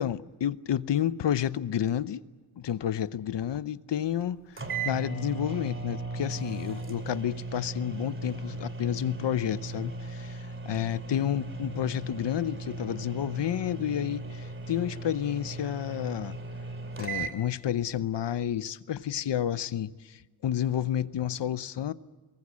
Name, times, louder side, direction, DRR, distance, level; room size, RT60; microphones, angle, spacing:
voice 1, 0.0-2.2 2.6-16.4 17.0-21.9, left 10 dB, 80° left, 0.9 m, -30 dB
sound 1, 4.2-4.3 4.6-17.4, right 3 dB, 30° right, 2.7 m, -37 dB
23.0 x 20.0 x 8.5 m
wide cardioid pair, 100°, 41 cm